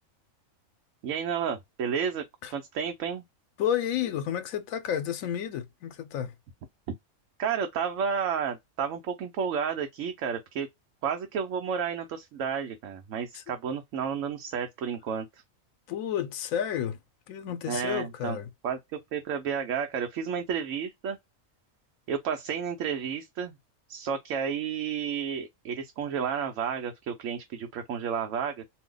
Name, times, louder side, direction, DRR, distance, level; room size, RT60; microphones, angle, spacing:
voice 1, 1.0-2.2 2.5-3.2 7.4-10.7 11.0-15.3 17.7-18.4 18.6-18.8 19.1-21.2 22.1-23.6 23.9-28.6, right 7 dB, 70° right, 1.0 m, -31 dB
voice 2, 3.6-6.3 13.3-13.4 15.9-17.0 17.3-18.5, left 9 dB, 80° left, 1.0 m, -31 dB
2.7 x 2.1 x 3.6 m
omnidirectional pair, 1.4 m